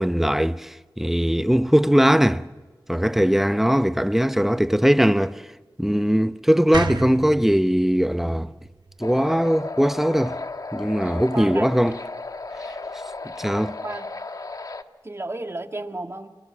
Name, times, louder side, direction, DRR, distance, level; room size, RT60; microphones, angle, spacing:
voice 1, 0.0-2.4 2.9-5.4 5.8-8.5 9.0-10.4 10.7-12.0 13.4-13.8, equal, 5° right, 0.8 m, -20 dB
sound 1, 6.7-9.9, right 3 dB, 70° right, 1.4 m, -33 dB
sound 2, 9.0-14.8, left 3 dB, 50° left, 1.3 m, -34 dB
voice 2, 11.3-11.7 13.8-14.1 15.0-16.3, right 2 dB, 35° right, 1.7 m, -32 dB
27.5 x 20.0 x 7.3 m
cardioid pair, 50°, 8 cm